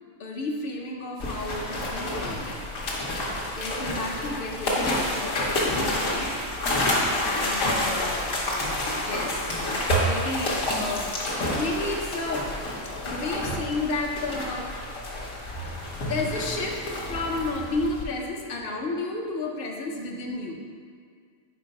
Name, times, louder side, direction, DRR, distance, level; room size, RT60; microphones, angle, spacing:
voice 1, 0.2-2.6 3.6-6.3 7.2-11.1 11.6-12.5 13.0-14.7 16.0-20.5, left 2 dB, 50° left, 1 dB, 0.7 m, -32 dB
sound 1, 1.2-18.0, left 1 dB, 70° left, 1.4 m, -29 dB
4.6 x 4.6 x 5.1 m, 2.1 s
omnidirectional pair, 1.4 m